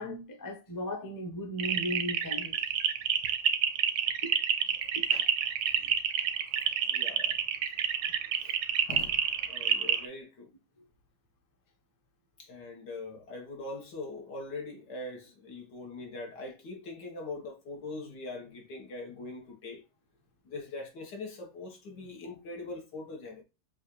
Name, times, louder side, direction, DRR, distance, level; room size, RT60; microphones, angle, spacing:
voice 1, 0.0-2.5 4.2-4.3 5.0-5.1, equal, 20° left, 0.6 m, -36 dB
sound 1, 1.6-10.1, right 8 dB, 85° right, 1.3 m, -28 dB
voice 2, 6.9-7.3 8.4-8.5 8.9-10.5 12.4-19.8 20.5-23.4, left 2 dB, 75° left, 2.0 m, -42 dB
6.1 x 2.5 x 3.1 m
omnidirectional pair, 1.9 m